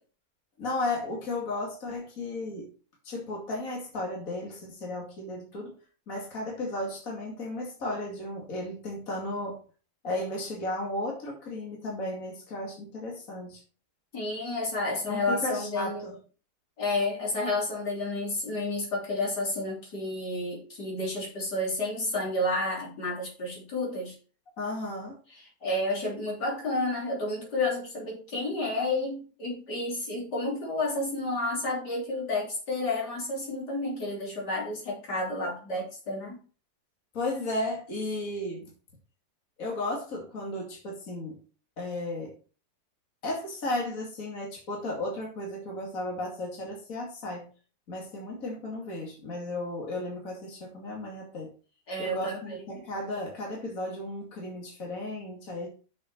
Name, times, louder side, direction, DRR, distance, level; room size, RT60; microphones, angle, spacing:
voice 1, 0.6-2.7 3.0-5.7 6.1-9.6 10.0-13.6 15.0-16.2 24.6-25.2 37.1-38.7 39.6-41.4 41.8-42.3 43.2-47.5 47.9-51.5 52.0-55.7, left 2 dB, 55° left, -2 dB, 2.9 m, -34 dB
voice 2, 14.1-16.1 16.8-24.2 25.3-36.4 51.9-52.6, left 2 dB, 85° left, -3 dB, 3.9 m, -31 dB
8.3 x 6.5 x 4.6 m, 0.37 s
omnidirectional pair, 1.7 m